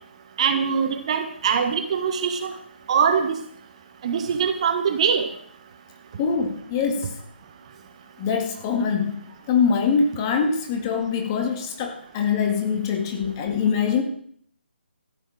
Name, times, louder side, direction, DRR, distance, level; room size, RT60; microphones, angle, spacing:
voice 1, 0.4-2.5 2.9-3.4 4.0-5.3, right 7 dB, 35° right, 7 dB, 1.5 m, -22 dB
voice 2, 6.2-7.1 8.2-9.2 9.5-14.0, left 6 dB, 25° left, 4 dB, 1.9 m, -23 dB
14.0 x 8.9 x 6.4 m, 0.63 s
figure-of-eight pair, 145°, 6 cm